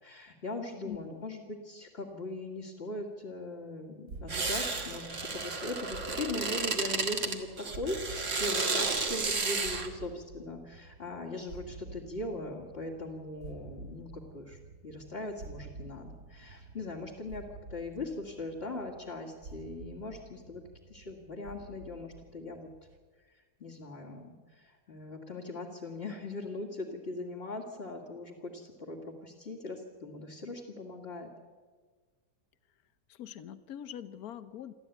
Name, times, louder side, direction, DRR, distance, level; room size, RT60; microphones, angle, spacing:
voice 1, 0.0-20.6 20.9-22.7 23.3-31.3, left 2 dB, 40° left, -3 dB, 2.4 m, -40 dB
voice 2, 0.8-1.2 33.1-34.7, left 10 dB, 70° left, 13 dB, 1.4 m, -43 dB
sound 1, 4.1-23.0, right 3 dB, 70° right, 2.2 m, -50 dB
sound 2, 4.3-9.9, right 4 dB, 50° right, 2.1 m, -32 dB
28.5 x 12.5 x 9.2 m, 1.5 s
omnidirectional pair, 1.7 m